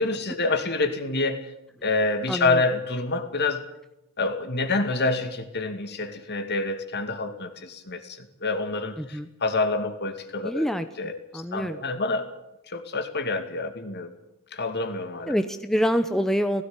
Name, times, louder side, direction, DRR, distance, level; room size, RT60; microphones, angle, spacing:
voice 1, 0.0-1.5 1.8-3.6 4.2-10.7 11.0-12.3 12.7-14.1 14.5-15.3, left 3 dB, 50° left, 7 dB, 2.4 m, -27 dB
voice 2, 2.3-2.6 9.0-9.3 10.4-10.9 11.3-11.8 15.3-16.6, equal, ahead, 8 dB, 0.8 m, -26 dB
17.5 x 15.5 x 9.8 m, 0.86 s
head